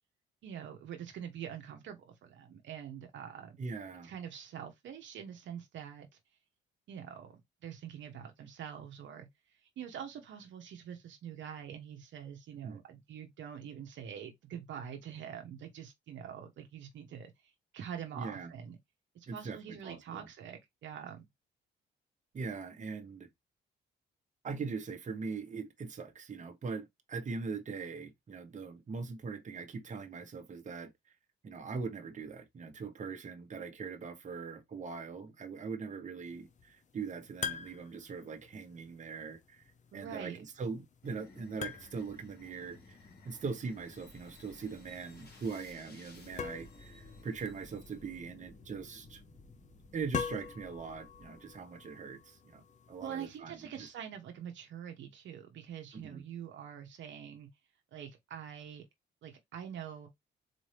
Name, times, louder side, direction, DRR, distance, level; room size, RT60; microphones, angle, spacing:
voice 1, 0.4-3.6 4.0-6.1 6.9-9.3 9.6-18.8 19.1-21.2 39.9-40.4 53.0-57.5 57.9-58.8 59.2-60.1, right 8 dB, 70° right, 0.9 m, -45 dB
voice 2, 3.6-4.1 12.6-12.8 18.1-18.5 19.3-20.3 22.3-23.3 24.4-30.9 31.4-39.6 39.9-43.0 43.2-49.2 49.9-53.9 55.9-56.2, right 5 dB, 40° right, 1.0 m, -41 dB
sound 1, 36.2-53.4, left 6 dB, 35° left, 0.7 m, -46 dB
sound 2, 41.0-51.6, left 2 dB, 55° left, 2.1 m, -56 dB
4.1 x 2.6 x 3.2 m
cardioid pair, 90°, 20 cm